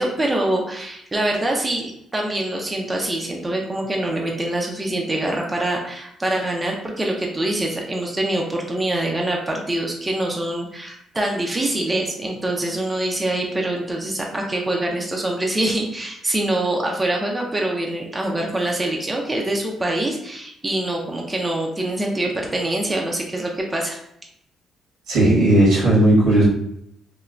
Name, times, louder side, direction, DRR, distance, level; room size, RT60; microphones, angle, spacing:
voice 1, 0.0-24.0, right 1 dB, 20° right, 0 dB, 0.5 m, -24 dB
voice 2, 25.1-26.5, right 1 dB, 90° right, -6 dB, 1.4 m, -15 dB
3.1 x 2.1 x 2.4 m, 0.75 s
cardioid pair, 90°, 0 cm